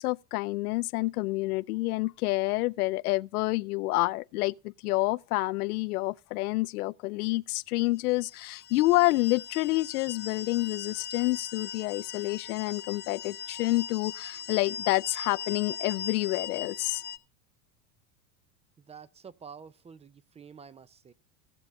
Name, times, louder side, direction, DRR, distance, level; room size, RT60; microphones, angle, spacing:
voice 1, 0.0-17.0, left 20 dB, 80° left, 0.5 m, -28 dB
sound 1, 8.2-17.2, left 7 dB, 25° left, 0.6 m, -40 dB
voice 2, 18.8-21.1, right 6 dB, 15° right, 0.4 m, -49 dB
18.0 x 7.1 x 2.6 m
hypercardioid pair, 100°, 44 cm